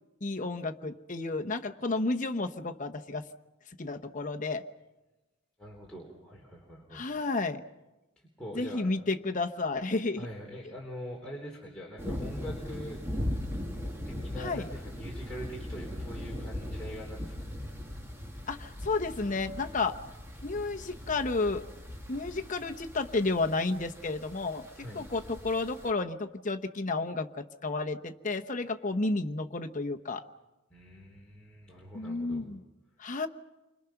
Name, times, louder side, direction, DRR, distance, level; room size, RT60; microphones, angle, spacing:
voice 1, 0.2-3.3 3.8-4.6 6.9-7.6 8.5-10.3 14.4-14.7 18.5-20.0 20.4-21.6 22.1-24.7 24.9-30.2 31.9-32.6 33.0-33.3, left 3 dB, 40° left, 6 dB, 1.0 m, -31 dB
voice 2, 5.6-7.0 8.4-8.9 10.2-13.0 14.1-17.5 24.8-25.1 30.7-32.5, equal, 5° left, -4 dB, 3.7 m, -43 dB
sound 1, 12.0-25.9, left 1 dB, 15° right, 2.3 m, -39 dB
30.0 x 25.0 x 5.9 m, 1.0 s
head